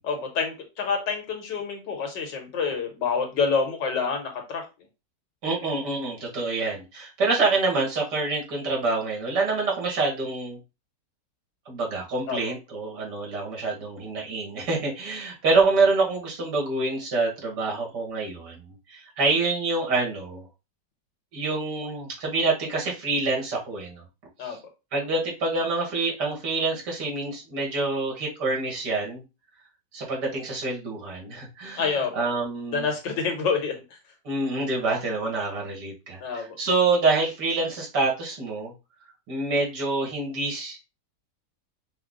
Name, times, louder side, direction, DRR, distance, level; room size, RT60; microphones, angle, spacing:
voice 1, 0.0-4.7 12.3-12.4 24.4-24.6 31.8-32.1 32.7-34.0 36.2-36.6, left 5 dB, 85° left, 3 dB, 1.8 m, -27 dB
voice 2, 5.4-10.6 11.7-18.6 18.9-20.4 21.3-24.0 24.4-24.6 24.9-29.2 29.9-32.9 34.2-38.7 39.3-40.8, right 3 dB, 75° right, -1 dB, 2.3 m, -26 dB
5.5 x 2.1 x 3.8 m, 0.27 s
omnidirectional pair, 1.9 m